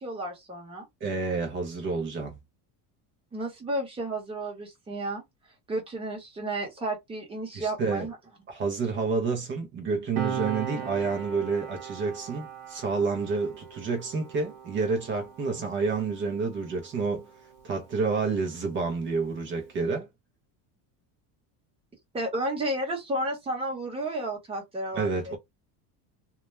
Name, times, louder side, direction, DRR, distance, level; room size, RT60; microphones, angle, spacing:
voice 1, 0.0-0.9 3.3-5.2 5.7-8.2 22.1-25.4, right 1 dB, 10° right, 0.8 m, -32 dB
voice 2, 1.0-2.4 7.5-8.1 8.5-17.3 17.6-20.1 24.9-25.4, right 4 dB, 30° right, 0.4 m, -29 dB
Piano, 10.2-17.2 17.5-17.7, right 8 dB, 50° right, 0.8 m, -38 dB
2.2 x 2.1 x 2.9 m
cardioid pair, 150°, 45 cm